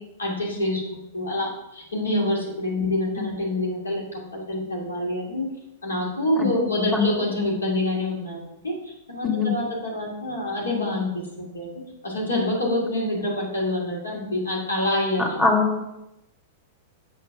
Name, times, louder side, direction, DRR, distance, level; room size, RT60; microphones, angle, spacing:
voice 1, 0.0-5.5 5.8-11.1 11.4-11.7 12.0-15.4, left 1 dB, 80° left, -3 dB, 2.5 m, -26 dB
voice 2, 15.2-15.8, left 3 dB, 10° left, 0 dB, 1.9 m, -22 dB
6.9 x 6.8 x 6.0 m, 0.88 s
figure-of-eight pair, 100°, 0 cm